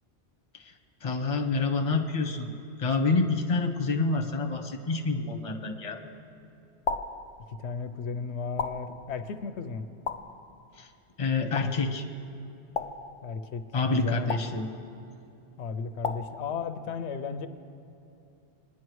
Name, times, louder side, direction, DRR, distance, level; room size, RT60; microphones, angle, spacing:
voice 1, 1.0-2.5 2.8-6.0 10.8-10.9 11.2-12.1 13.7-14.7, left 3 dB, 35° left, 5 dB, 0.9 m, -27 dB
sound 1, 6.9-7.3 8.6-9.0 10.1-10.4 11.6-11.9 12.8-13.2 14.3-14.7 16.0-16.4, left 5 dB, 55° left, 0.3 m, -33 dB
voice 2, 7.6-9.8 13.2-13.6 13.9-14.4 15.6-17.5, left 5 dB, 90° left, 10 dB, 0.9 m, -34 dB
20.5 x 9.9 x 3.1 m, 2.7 s
omnidirectional pair, 1.1 m